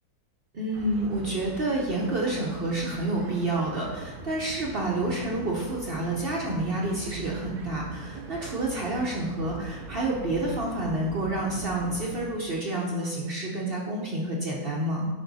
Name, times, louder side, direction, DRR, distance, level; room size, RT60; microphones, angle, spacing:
voice 1, 0.5-15.1, right 2 dB, 45° right, -2 dB, 0.9 m, -29 dB
sound 1, 0.7-12.3, right 4 dB, 80° right, 1.4 m, -42 dB
10.5 x 3.6 x 4.1 m, 1.2 s
omnidirectional pair, 1.7 m